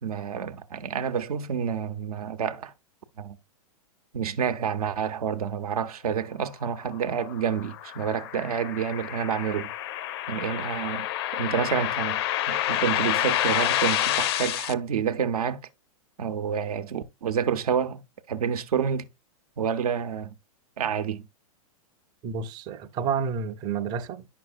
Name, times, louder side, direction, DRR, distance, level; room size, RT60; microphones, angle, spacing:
voice 1, 0.0-2.7 3.2-3.4 4.1-9.7 10.3-11.1 11.3-15.6 16.2-18.0 18.3-19.1 19.6-20.3 20.8-21.3, right 7 dB, 85° right, 0.8 m, -28 dB
sound 1, 6.9-14.7, left 13 dB, 45° left, 0.4 m, -28 dB
voice 2, 22.2-24.3, right 6 dB, 25° right, 0.5 m, -30 dB
9.0 x 5.9 x 2.4 m
hypercardioid pair, 150°, 18 cm